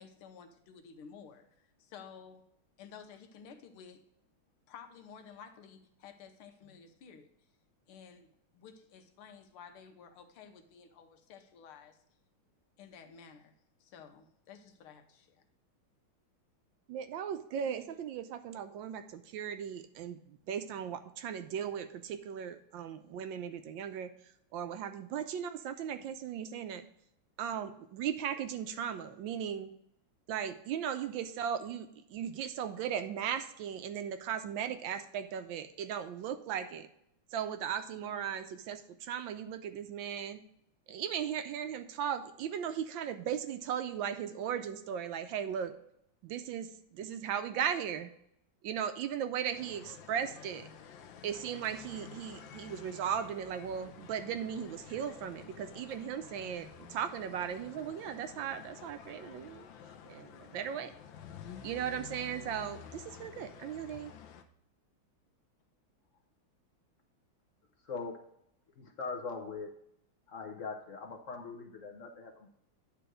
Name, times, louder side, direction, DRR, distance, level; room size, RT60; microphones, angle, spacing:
voice 1, 0.0-2.4 2.8-4.0 4.7-7.3 7.9-8.3 8.5-12.0 12.8-13.5 13.8-15.4, left 6 dB, 90° left, 6 dB, 1.8 m, -53 dB
voice 2, 16.9-24.1 24.5-26.8 27.4-29.7 30.3-36.9 37.3-40.4 40.9-45.8 46.2-48.1 48.6-50.7 51.2-59.7 60.1-60.9 61.6-64.1, right 8 dB, 75° right, 9 dB, 1.3 m, -37 dB
sound 1, 49.5-64.4, left 8 dB, 70° left, 1.4 m, -51 dB
voice 3, 67.8-68.2 68.8-69.8 70.3-72.5, left 4 dB, 50° left, 3 dB, 1.0 m, -41 dB
10.0 x 3.5 x 6.1 m, 0.73 s
omnidirectional pair, 2.3 m